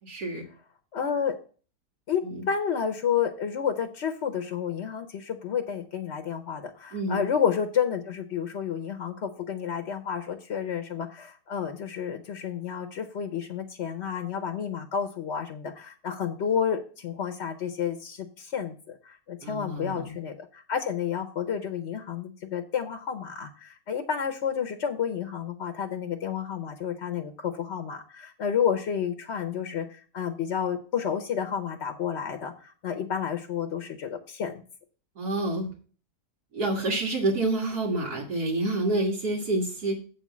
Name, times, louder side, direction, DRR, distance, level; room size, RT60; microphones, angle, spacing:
voice 1, 0.0-0.4 2.2-2.5 6.9-7.3 19.4-20.1 35.2-35.7 36.5-40.0, right 2 dB, 80° right, -5 dB, 2.3 m, -28 dB
voice 2, 0.9-1.3 2.1-34.6, left 7 dB, 55° left, 6 dB, 1.0 m, -30 dB
7.8 x 4.4 x 7.1 m, 0.39 s
omnidirectional pair, 1.6 m